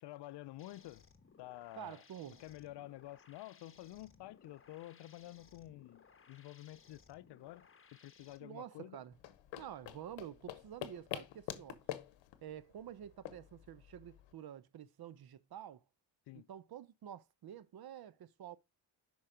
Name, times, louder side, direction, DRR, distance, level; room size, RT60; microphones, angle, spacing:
voice 1, 0.0-1.1 1.4-2.0 2.4-9.0 16.3-16.5, left 16 dB, 65° left, 0.5 m, -50 dB
sound 1, 0.6-8.4, left 5 dB, 30° left, 1.0 m, -63 dB
voice 2, 1.8-2.4 8.4-9.1 9.6-11.8 12.4-15.8 16.3-18.6, right 10 dB, 55° right, 0.8 m, -49 dB
sound 2, 9.1-14.3, left 13 dB, 90° left, 0.9 m, -47 dB
5.5 x 4.7 x 5.0 m
cardioid pair, 80°, 44 cm